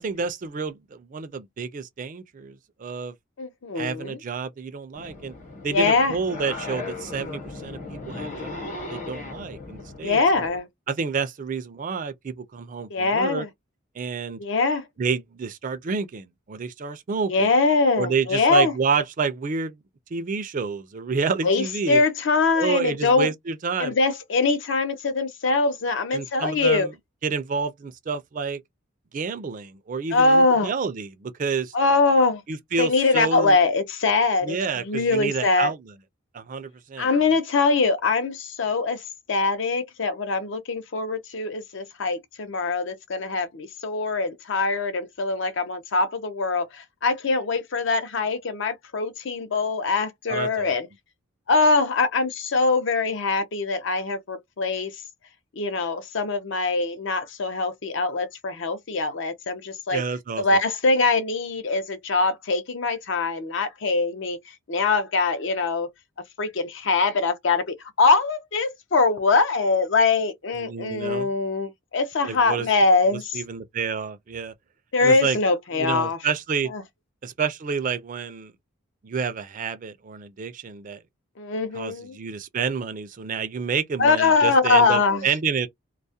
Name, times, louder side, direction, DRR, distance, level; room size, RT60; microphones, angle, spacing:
voice 1, 0.0-3.1 3.8-5.3 5.6-10.2 10.9-13.4 14.0-14.4 15.0-17.5 17.9-19.8 20.1-22.0 22.6-23.9 26.1-26.9 27.2-28.6 29.1-31.7 32.5-33.6 34.4-35.8 36.3-37.1 50.3-50.7 59.9-60.4 70.6-71.3 72.2-72.7 73.3-74.5 75.0-75.4 75.8-76.7 77.2-78.5 79.0-81.0 81.7-85.7, right 5 dB, 40° right, 0.4 m, -29 dB
voice 2, 3.4-4.2 5.7-6.2 10.0-10.7 12.9-13.5 14.4-14.9 17.3-18.7 21.4-23.3 23.8-26.9 30.1-30.7 31.7-32.4 32.8-35.7 37.0-39.0 39.3-50.9 51.5-55.0 55.6-60.0 60.4-65.9 66.4-73.4 74.9-76.2 76.7-76.8 81.4-82.2 84.0-85.3, left 3 dB, 60° left, 0.5 m, -23 dB
sound 1, 4.9-10.6, left 3 dB, 40° left, 0.9 m, -37 dB
2.3 x 2.0 x 2.6 m
head